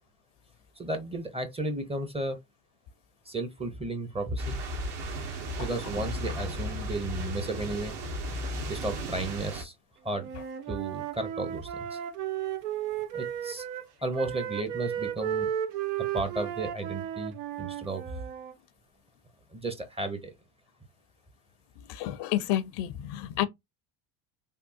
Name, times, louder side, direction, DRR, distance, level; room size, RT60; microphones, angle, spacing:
voice 1, 0.8-2.4 3.3-4.6 5.6-8.0 8.7-9.7 10.0-10.3 10.7-12.0 13.1-13.6 14.0-15.5 16.0-18.1 19.5-20.3, right 2 dB, 15° right, 0.6 m, -34 dB
sound 1, 4.4-9.6, equal, 55° right, 1.2 m, -35 dB
Wind instrument woodwind instrument, 10.1-13.9 14.1-18.5, right 10 dB, 85° right, 0.7 m, -34 dB
voice 2, 21.9-23.5, left 13 dB, 60° left, 0.5 m, -30 dB
3.5 x 2.3 x 2.5 m
supercardioid pair, 85°, 48 cm